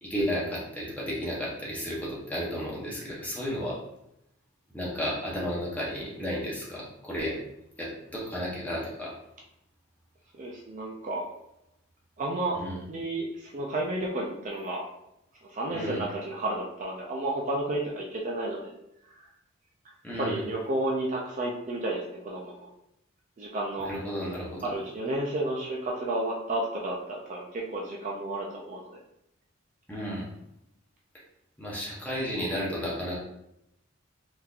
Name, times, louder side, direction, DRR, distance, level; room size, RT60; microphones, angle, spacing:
voice 1, 0.0-3.8 4.7-7.4 7.8-9.1 12.5-12.8 15.7-16.0 20.0-20.4 23.8-24.6 29.9-30.3 31.6-33.2, equal, 5° left, -6 dB, 0.8 m, -33 dB
voice 2, 10.3-11.3 12.2-12.6 12.9-14.9 15.4-18.7 19.2-19.3 19.8-19.9 20.2-22.7 23.4-23.9 24.6-29.0, right 1 dB, 35° right, -2 dB, 0.4 m, -32 dB
3.6 x 2.8 x 2.3 m, 0.82 s
head